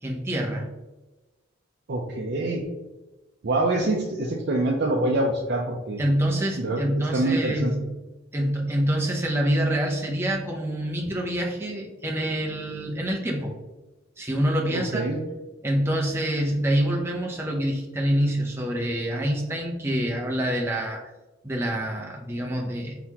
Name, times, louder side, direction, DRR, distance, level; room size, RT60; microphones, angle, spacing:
voice 1, 0.0-0.7 6.0-7.8 8.3-13.5 14.2-15.1 15.6-21.1 21.4-23.0, equal, 10° right, 0 dB, 0.6 m, -26 dB
voice 2, 1.9-2.6 3.4-6.0 6.6-7.7 14.7-15.2, right 2 dB, 55° right, -1 dB, 0.5 m, -25 dB
4.3 x 4.0 x 2.8 m, 1.1 s
head